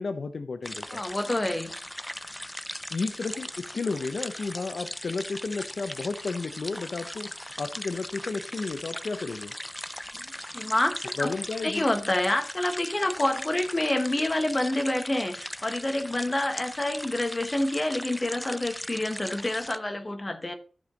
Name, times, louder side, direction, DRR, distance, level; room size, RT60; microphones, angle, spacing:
voice 1, 0.0-1.0 2.9-7.3 7.6-9.5 11.2-11.8, left 4 dB, 70° left, 0.6 m, -32 dB
sound 1, 0.6-19.8, left 1 dB, 10° left, 0.4 m, -39 dB
voice 2, 0.9-1.7 10.2-11.3 11.6-20.5, left 1 dB, 25° left, 1.3 m, -28 dB
14.0 x 5.2 x 3.8 m
wide cardioid pair, 110°, 0 cm